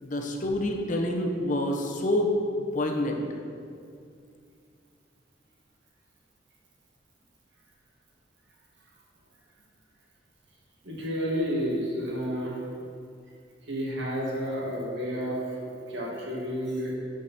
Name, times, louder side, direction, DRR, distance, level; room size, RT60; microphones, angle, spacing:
voice 1, 0.0-2.3 2.7-3.2, left 1 dB, 45° left, 2 dB, 1.0 m, -27 dB
voice 2, 10.8-12.6 13.7-15.4 15.7-17.0, equal, 75° right, -4 dB, 2.2 m, -31 dB
13.0 x 5.1 x 4.3 m, 2.3 s
head